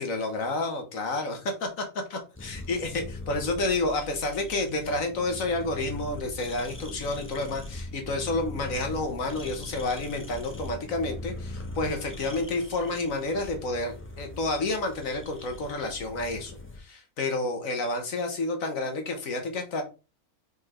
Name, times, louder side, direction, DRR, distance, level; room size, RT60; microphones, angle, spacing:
voice 1, 0.0-1.8 2.1-2.9 3.3-19.8, left 2 dB, 65° left, 5 dB, 1.6 m, -30 dB
sound 1, 2.3-16.8, left 2 dB, 10° left, 0.9 m, -41 dB
5.0 x 4.4 x 4.3 m, 0.31 s
omnidirectional pair, 1.5 m